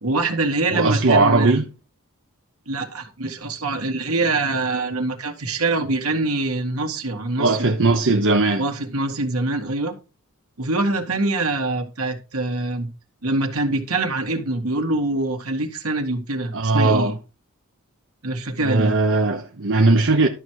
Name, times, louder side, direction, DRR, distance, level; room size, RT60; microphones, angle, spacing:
voice 1, 0.0-1.6 2.7-7.7 8.6-9.9 10.6-12.9 13.2-17.1 18.2-18.9, right 2 dB, 80° right, 1.9 m, -24 dB
voice 2, 0.7-1.7 7.4-8.7 16.5-17.1 18.6-20.3, right 3 dB, 60° right, 0.9 m, -18 dB
12.0 x 6.2 x 4.7 m
head